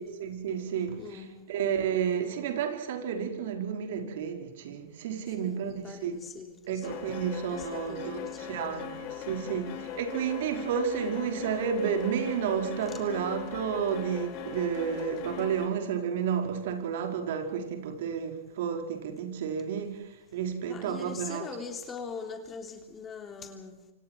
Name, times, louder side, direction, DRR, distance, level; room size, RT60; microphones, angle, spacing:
voice 1, 0.0-1.2 1.5-6.2 6.7-21.4, right 7 dB, 65° right, 4 dB, 4.9 m, -31 dB
voice 2, 1.0-1.4 5.4-7.2 7.5-9.0 9.4-9.7 12.9-13.0 20.7-23.8, left 5 dB, 25° left, 4 dB, 3.3 m, -42 dB
sound 1, 6.8-15.7, left 9 dB, 45° left, 4.8 m, -40 dB
27.5 x 26.5 x 4.7 m, 0.94 s
hypercardioid pair, 110°, 0 cm